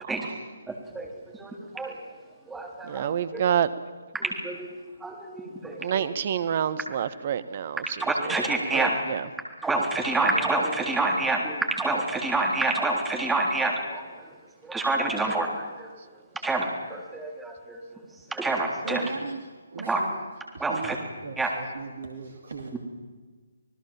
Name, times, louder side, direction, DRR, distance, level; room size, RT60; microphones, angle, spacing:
voice 1, 0.7-1.1 1.4-2.0 2.5-3.4 4.1-4.7 5.0-6.1 8.0-8.9 9.6-14.0 14.6-15.9 16.4-17.8 18.3-19.1 19.9-20.0 20.6-21.0 21.4-21.5, right 2 dB, 5° right, 1 dB, 3.5 m, -27 dB
voice 2, 2.9-3.7 5.8-7.8 8.7-9.2, right 9 dB, 40° right, 15 dB, 1.3 m, -27 dB
voice 3, 18.8-19.4 19.7-20.1 20.7-20.9 21.2-22.8, right 4 dB, 55° right, 3 dB, 2.5 m, -37 dB
26.5 x 19.5 x 7.4 m, 1.4 s
figure-of-eight pair, 140°, 0 cm